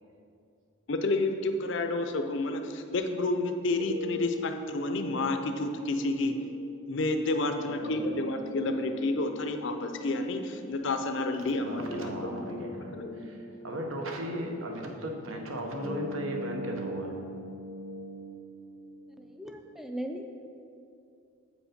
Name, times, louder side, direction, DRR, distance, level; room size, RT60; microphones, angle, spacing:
voice 1, 0.9-6.3 6.9-13.3, left 2 dB, 55° left, 6 dB, 0.5 m, -30 dB
sound 1, 3.8-19.8, left 1 dB, 45° right, 1.7 m, -42 dB
voice 2, 7.4-8.4 11.1-17.2, right 1 dB, 70° right, 2 dB, 0.9 m, -37 dB
voice 3, 19.2-20.3, equal, ahead, 4 dB, 0.4 m, -38 dB
7.7 x 5.1 x 5.0 m, 2.5 s
head